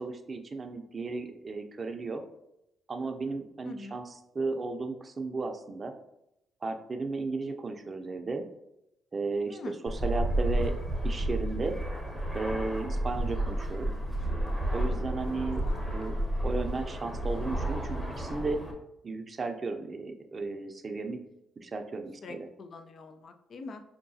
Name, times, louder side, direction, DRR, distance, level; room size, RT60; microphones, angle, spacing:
voice 1, 0.0-2.2 2.9-4.0 4.3-5.9 6.6-8.5 9.1-9.6 9.8-10.8 11.0-11.8 12.3-13.9 14.7-15.6 15.9-16.1 16.4-18.6 19.0-21.2 21.6-22.5, right 3 dB, 35° right, 6 dB, 0.5 m, -34 dB
voice 2, 3.6-4.0 9.5-9.8 15.0-15.2 15.6-15.9 22.2-23.8, left 3 dB, 50° left, 7 dB, 0.3 m, -44 dB
Fixed-wing aircraft airplane, 9.9-18.7, right 1 dB, 10° left, 0.8 m, -31 dB
5.5 x 2.2 x 2.6 m, 0.83 s
cardioid pair, 90°, 0 cm